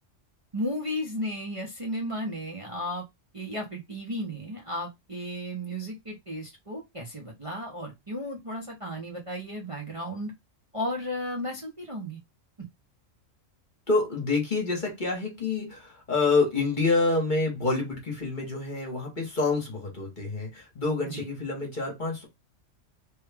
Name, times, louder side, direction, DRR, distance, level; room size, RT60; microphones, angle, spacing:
voice 1, 0.5-3.0 3.3-10.3 10.7-12.2 21.0-21.2, equal, 30° right, 0.7 m, -34 dB
voice 2, 13.9-22.2, left 3 dB, 40° left, 1.1 m, -27 dB
3.1 x 2.3 x 3.3 m
omnidirectional pair, 1.3 m